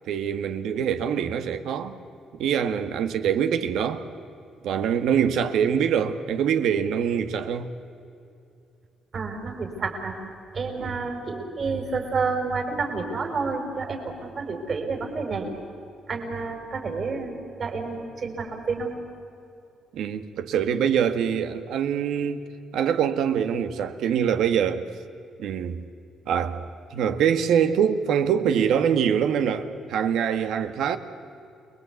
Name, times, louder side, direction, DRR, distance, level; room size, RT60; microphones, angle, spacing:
voice 1, 0.1-2.0 2.4-4.0 4.6-7.7 10.8-11.0 19.9-22.4 22.7-24.8 25.4-25.8 26.3-26.6 26.9-31.0, right 8 dB, 75° right, 1.7 m, -24 dB
voice 2, 9.1-10.2 10.5-15.5 16.1-18.9, right 4 dB, 40° right, 5.4 m, -29 dB
29.0 x 21.5 x 8.4 m
cardioid pair, 120°, 0 cm